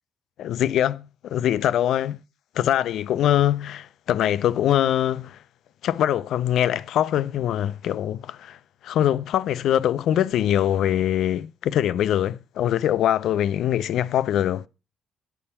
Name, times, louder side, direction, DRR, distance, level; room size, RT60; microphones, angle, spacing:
voice 1, 0.4-2.2 2.6-5.4 5.8-8.6 8.8-14.6, left 11 dB, 80° left, 0.4 m, -23 dB
9.8 x 7.0 x 4.1 m
cardioid pair, 90°, 0 cm